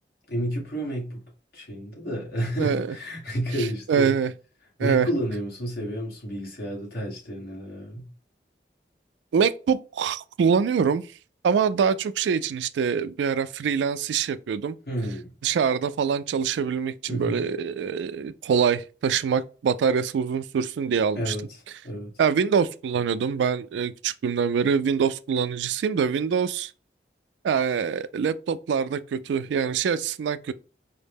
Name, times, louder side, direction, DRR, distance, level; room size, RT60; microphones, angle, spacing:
voice 1, 0.3-1.2 1.5-4.1 4.8-8.1 14.9-15.3 17.1-17.4 21.1-21.5 21.8-22.1, equal, 60° left, 1.4 m, -30 dB
voice 2, 2.6-3.0 3.9-4.3 4.8-5.1 9.3-11.0 11.4-14.8 15.4-21.4 22.2-26.7 27.4-30.5, right 6 dB, 90° right, 0.3 m, -24 dB
4.6 x 2.1 x 3.4 m
head